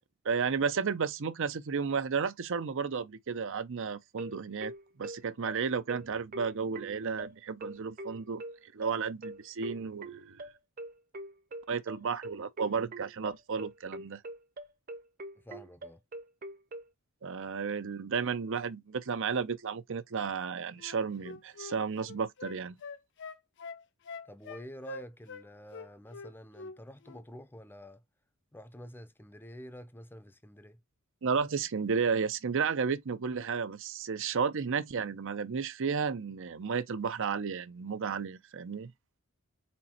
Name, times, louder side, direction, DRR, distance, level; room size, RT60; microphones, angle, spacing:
voice 1, 0.2-4.7 5.0-8.4 8.7-10.4 11.7-14.2 17.2-22.8 31.2-38.9, right 5 dB, 65° right, 0.6 m, -33 dB
sound 1, 4.2-16.9, right 1 dB, 45° right, 0.9 m, -43 dB
voice 2, 15.4-16.0 24.2-28.0 28.5-30.8, equal, 10° left, 0.6 m, -48 dB
Wind instrument woodwind instrument, 20.8-25.4 25.7-26.8 27.0-27.2, left 4 dB, 55° left, 0.7 m, -44 dB
4.3 x 4.1 x 2.8 m
head